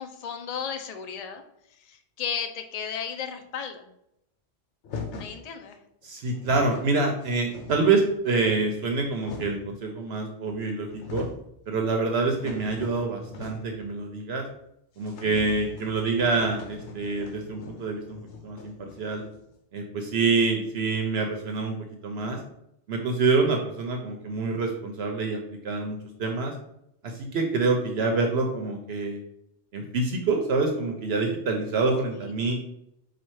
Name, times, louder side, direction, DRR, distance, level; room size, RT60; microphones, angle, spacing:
voice 1, 0.0-1.4 1.8-3.9 5.2-5.8 32.2-32.3, left 7 dB, 50° left, 6 dB, 0.4 m, -34 dB
sound 1, 4.8-5.4 6.0-6.1 6.3-6.9 7.2-8.1 8.8-9.7 10.5-10.6 10.8-11.5 11.9-13.8 14.1-14.2 14.5-14.6 15.0-19.5, left 4 dB, 75° left, 1.0 m, -41 dB
voice 2, 6.0-11.2 11.7-14.4 15.0-18.2 18.4-19.2 19.7-21.8 22.0-22.4 22.9-26.5 27.0-29.2 29.7-32.6, right 3 dB, 65° right, 2 dB, 0.8 m, -26 dB
4.2 x 2.4 x 4.6 m, 0.80 s
omnidirectional pair, 1.2 m